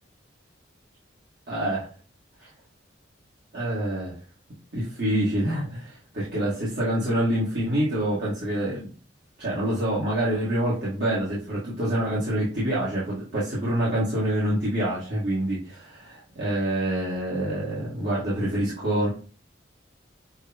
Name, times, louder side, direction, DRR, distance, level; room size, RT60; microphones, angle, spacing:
voice 1, 1.5-1.9 2.4-2.5 3.5-4.1 4.7-8.9 9.4-19.1, right 1 dB, 60° right, -9 dB, 1.5 m, -26 dB
6.3 x 2.2 x 2.8 m, 0.38 s
head